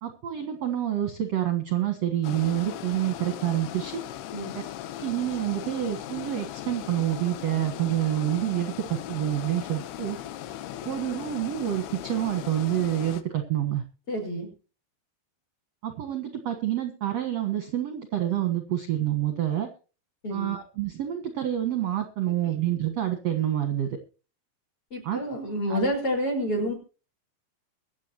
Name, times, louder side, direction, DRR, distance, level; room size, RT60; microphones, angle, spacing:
voice 1, 0.0-4.0 4.5-4.6 5.0-10.2 10.9-13.8 15.8-19.7 20.3-24.0 25.0-25.2 25.7-25.9, right 12 dB, 55° right, 6 dB, 1.9 m, -28 dB
sound 1, 2.2-13.2, left 12 dB, 75° left, 2.9 m, -38 dB
voice 2, 14.1-14.5 20.2-20.5 22.4-22.5 24.9-26.7, equal, 30° left, 1 dB, 5.6 m, -29 dB
23.5 x 8.7 x 3.0 m, 0.35 s
omnidirectional pair, 4.9 m